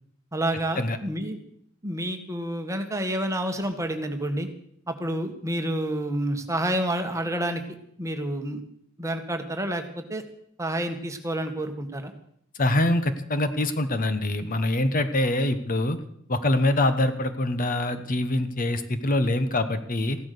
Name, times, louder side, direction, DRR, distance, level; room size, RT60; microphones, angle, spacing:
voice 1, 0.3-1.4 1.8-4.5 4.9-7.6 8.0-8.6 9.0-10.2 10.6-12.1, right 1 dB, 15° right, 6 dB, 1.5 m, -29 dB
voice 2, 12.6-16.0 16.3-20.2, left 1 dB, 40° left, 10 dB, 1.1 m, -24 dB
15.5 x 12.0 x 6.8 m, 0.68 s
head